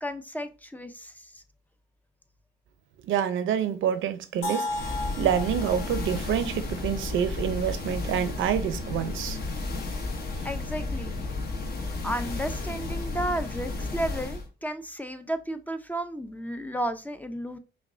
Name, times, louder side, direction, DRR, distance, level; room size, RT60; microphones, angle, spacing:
voice 1, 0.0-1.4 10.4-11.2 12.0-17.6, right 1 dB, 10° left, 0.5 m, -33 dB
voice 2, 3.1-4.7 5.2-9.4, right 9 dB, 80° right, 0.7 m, -27 dB
sound 1, 4.4-8.3, left 1 dB, 80° left, 1.0 m, -37 dB
sound 2, 4.7-14.5, left 3 dB, 50° left, 1.1 m, -33 dB
5.7 x 2.3 x 2.6 m
cardioid pair, 90°, 20 cm